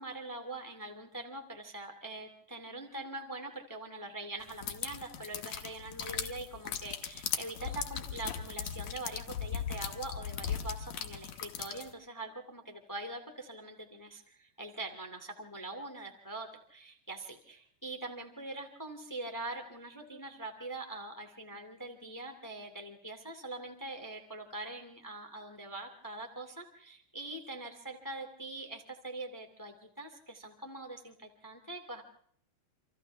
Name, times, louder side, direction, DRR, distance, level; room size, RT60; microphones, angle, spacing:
voice 1, 0.0-32.0, right 2 dB, 5° left, 4 dB, 1.7 m, -43 dB
sound 1, 4.5-11.9, left 8 dB, 60° left, 2.2 m, -38 dB
28.5 x 26.0 x 3.5 m, 0.62 s
omnidirectional pair, 4.1 m